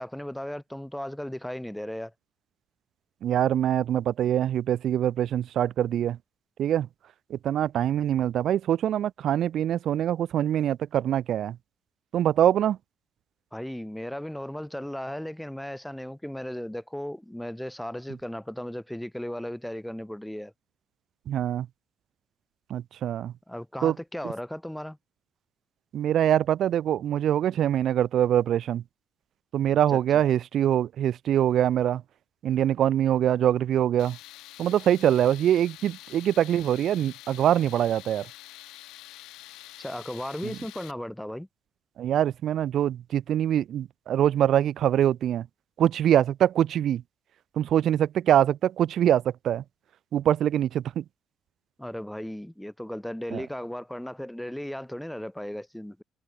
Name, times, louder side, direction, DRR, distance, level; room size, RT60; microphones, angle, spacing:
voice 1, 0.0-2.1 13.5-20.5 23.5-25.0 29.9-30.0 39.8-41.5 51.8-56.0, left 1 dB, 5° left, 3.7 m, -36 dB
voice 2, 3.2-6.2 6.6-6.9 7.3-11.6 12.1-12.8 21.3-21.7 22.7-23.3 23.8-23.9 25.9-28.8 29.5-32.0 32.4-34.2 34.6-38.3 40.4-40.5 42.0-45.5 45.8-47.0 47.6-49.6 50.1-51.0 53.3-53.4, right 10 dB, 50° right, 1.1 m, -24 dB
Tools, 34.0-40.9, left 17 dB, 85° left, 5.4 m, -47 dB
cardioid pair, 165°, 0 cm